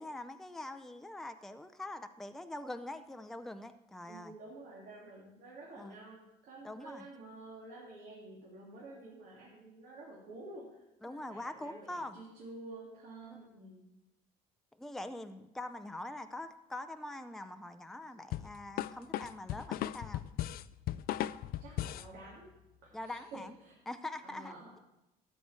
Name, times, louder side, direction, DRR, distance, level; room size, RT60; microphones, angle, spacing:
voice 1, 0.0-4.3 5.8-5.9 6.6-7.1 11.0-12.2 13.3-13.5 14.8-20.2 22.9-23.5 23.9-24.5, left 1 dB, ahead, 8 dB, 0.5 m, -43 dB
voice 2, 4.1-13.8 21.6-22.5 22.9-23.7 24.2-24.8, right 2 dB, 80° right, -6 dB, 2.9 m, -50 dB
sound 1, 18.3-22.1, left 13 dB, 60° left, 0.4 m, -37 dB
13.0 x 8.2 x 4.3 m, 0.92 s
cardioid pair, 110°, 17 cm